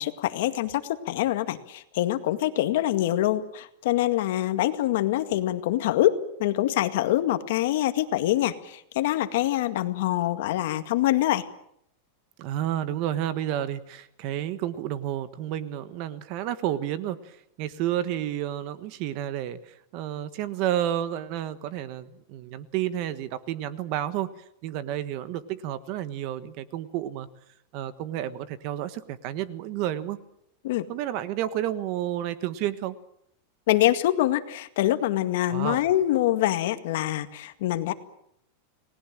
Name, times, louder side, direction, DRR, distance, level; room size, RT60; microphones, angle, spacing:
voice 1, 0.0-11.4 30.6-30.9 33.7-37.9, left 14 dB, 55° left, 9 dB, 2.0 m, -25 dB
voice 2, 12.4-24.3 24.6-27.3 27.7-30.2 30.9-33.0 35.5-35.8, right 12 dB, 35° right, 14 dB, 1.3 m, -31 dB
30.0 x 20.0 x 7.7 m, 0.75 s
supercardioid pair, 175°, 0 cm